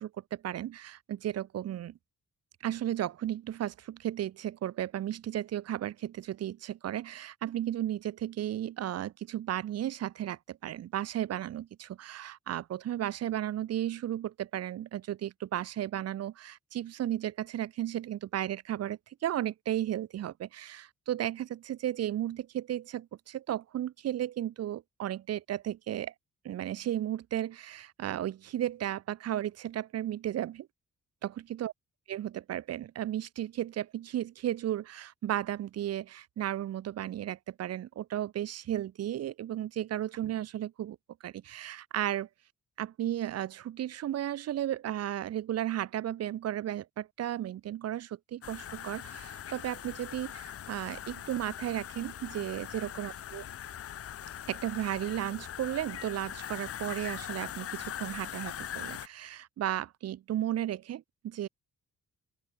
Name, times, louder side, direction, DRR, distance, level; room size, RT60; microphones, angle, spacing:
voice 1, 0.0-2.0 2.6-26.1 26.4-30.7 31.2-31.7 32.1-41.0 41.2-42.3 42.8-53.4 54.5-61.5, right 12 dB, 55° right, 0.5 m, -34 dB
sound 1, 48.4-59.1, left 10 dB, 50° left, 0.6 m, -41 dB
open air
cardioid pair, 100°, 30 cm